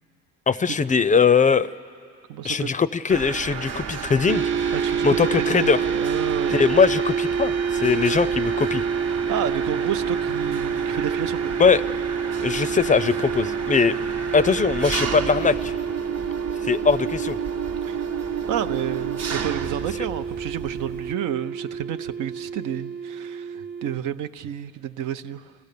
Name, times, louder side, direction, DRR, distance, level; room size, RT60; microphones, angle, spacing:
voice 1, 0.5-1.7 2.4-4.7 5.0-5.8 6.5-8.8 11.6-11.8 12.4-14.0 14.3-15.7 16.7-17.4, left 5 dB, 25° left, 16 dB, 0.4 m, -20 dB
voice 2, 2.3-2.8 4.7-6.7 9.1-11.5 17.8-18.1 18.5-25.5, right 9 dB, 85° right, 10 dB, 0.7 m, -31 dB
Mechanisms, 3.1-21.1, right 7 dB, 55° right, 0.9 m, -33 dB
sound 1, 4.3-24.0, right 6 dB, 40° right, 0.5 m, -28 dB
27.0 x 15.5 x 6.7 m, 2.3 s
cardioid pair, 90°, 30 cm